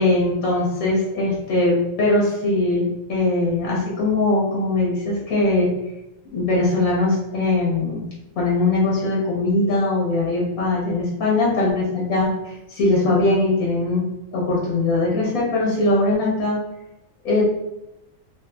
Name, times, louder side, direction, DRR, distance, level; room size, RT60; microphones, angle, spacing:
voice 1, 0.0-5.7 6.3-8.0 8.4-14.0 14.3-16.6 17.2-17.4, left 2 dB, 85° left, -6 dB, 1.5 m, -21 dB
3.2 x 2.9 x 2.3 m, 0.94 s
omnidirectional pair, 1.4 m